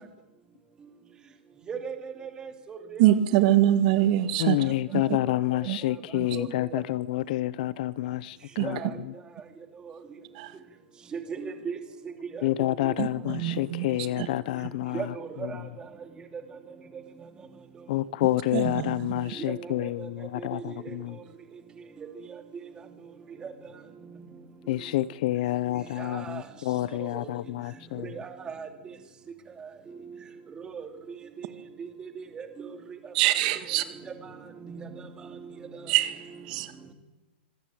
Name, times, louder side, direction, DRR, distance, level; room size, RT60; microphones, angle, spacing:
voice 1, 1.7-2.1 2.4-3.0 6.3-6.5 6.7-6.8 8.6-8.9 11.3-11.8 12.8-12.9 13.5-13.7 14.9-15.6 19.5-19.6 19.8-19.9 20.4-20.9 23.4-23.5 26.0-26.4 27.0-27.3 28.2-28.7 30.7-30.9 31.4-31.5 31.8-32.4 34.6-34.9, right 6 dB, 15° right, 7 dB, 2.6 m, -37 dB
voice 2, 3.0-4.6 4.9-5.0 5.7-5.8 6.1-6.3 8.6-8.7 10.4-10.5 13.0-13.1 13.3-13.9 14.2-14.3 18.5-19.0 33.1-33.8 35.9-36.2 36.5-36.7, right 13 dB, 45° right, 11 dB, 1.9 m, -23 dB
voice 3, 4.4-8.8 9.0-9.1 12.4-15.1 15.4-15.5 17.9-21.2 24.7-28.1, left 15 dB, 45° left, 19 dB, 0.7 m, -28 dB
25.5 x 16.5 x 9.0 m, 1.0 s
hypercardioid pair, 155°, 6 cm